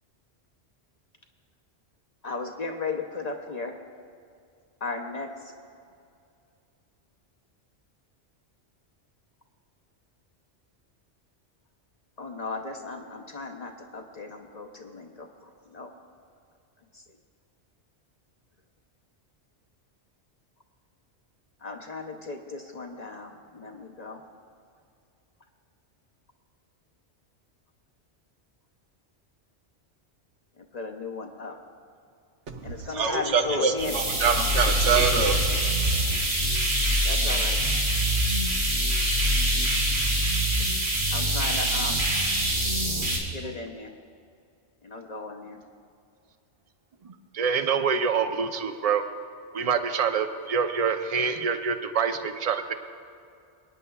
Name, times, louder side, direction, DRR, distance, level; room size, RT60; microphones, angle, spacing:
voice 1, 2.2-3.8 4.8-5.3 12.2-15.9 16.9-17.0 21.6-24.2 30.7-31.6 32.6-34.0 37.0-37.6 41.1-42.0 43.3-43.9 44.8-45.6, left 3 dB, 45° left, 3 dB, 0.7 m, -35 dB
voice 2, 32.5-36.2, right 5 dB, 85° right, 4 dB, 1.3 m, -26 dB
sound 1, 33.8-43.2, right 1 dB, 70° right, 3.1 m, -24 dB
voice 3, 47.0-49.0 49.5-52.7, right 6 dB, 45° right, 8 dB, 0.5 m, -26 dB
24.0 x 9.7 x 2.3 m, 2.4 s
omnidirectional pair, 1.2 m